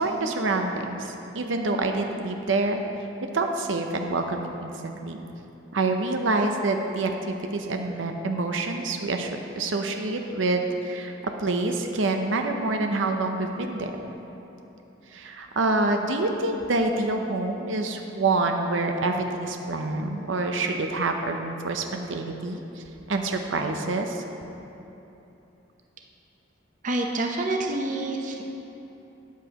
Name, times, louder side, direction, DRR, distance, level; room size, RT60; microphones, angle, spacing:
voice 1, 0.0-2.8 3.2-5.2 5.7-13.9 15.1-24.2, right 2 dB, 85° right, 4 dB, 0.7 m, -27 dB
voice 2, 26.8-28.4, right 2 dB, 45° right, 2 dB, 0.7 m, -27 dB
13.0 x 9.3 x 2.9 m, 3.0 s
head